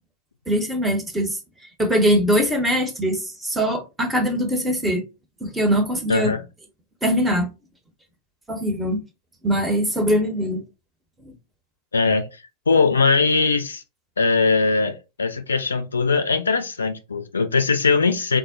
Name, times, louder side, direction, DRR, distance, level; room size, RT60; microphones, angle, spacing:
voice 1, 0.5-1.4 1.8-5.0 5.4-6.3 7.0-7.5 8.5-9.0 9.4-10.6 11.2-11.3, equal, 10° right, 0.7 m, -22 dB
voice 2, 6.1-6.5 11.9-12.2 12.7-13.8 14.2-18.4, left 4 dB, 75° left, 0.4 m, -20 dB
3.5 x 2.1 x 2.5 m
figure-of-eight pair, 90°, 0 cm